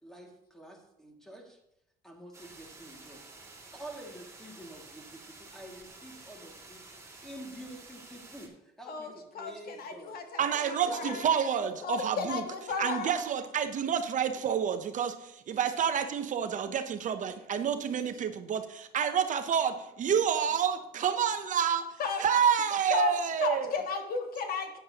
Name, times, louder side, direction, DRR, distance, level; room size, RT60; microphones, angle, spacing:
voice 1, 0.0-1.6 2.0-3.2 3.7-6.8 7.2-10.1 10.8-11.2 11.6-11.9, right 1 dB, 5° left, 2.2 m, -47 dB
sound 1, 2.3-8.5, right 3 dB, 15° right, 2.1 m, -51 dB
voice 2, 8.9-11.2 11.8-13.1 22.0-22.2 22.9-24.8, left 5 dB, 60° left, 1.5 m, -34 dB
voice 3, 10.4-12.4 12.8-23.7, right 8 dB, 50° right, 0.7 m, -29 dB
12.5 x 9.3 x 2.9 m
cardioid pair, 110°, 17 cm